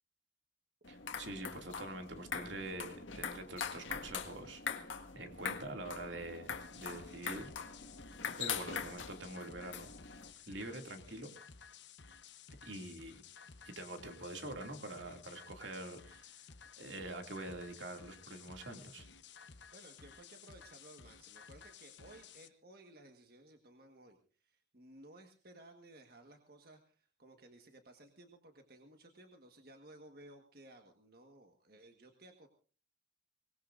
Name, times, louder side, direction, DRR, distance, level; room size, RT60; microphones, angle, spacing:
sound 1, 0.8-10.3, left 6 dB, 90° left, 1.8 m, -43 dB
voice 1, 0.9-7.5 8.4-9.9 10.5-11.3 12.6-13.2 13.6-16.5 16.7-19.1, right 2 dB, 75° right, 5 dB, 2.5 m, -45 dB
sound 2, 6.5-22.5, left 6 dB, 70° left, 1.0 m, -56 dB
voice 2, 19.7-32.5, right 1 dB, 50° right, 4 dB, 1.6 m, -58 dB
24.5 x 19.5 x 2.6 m, 0.38 s
head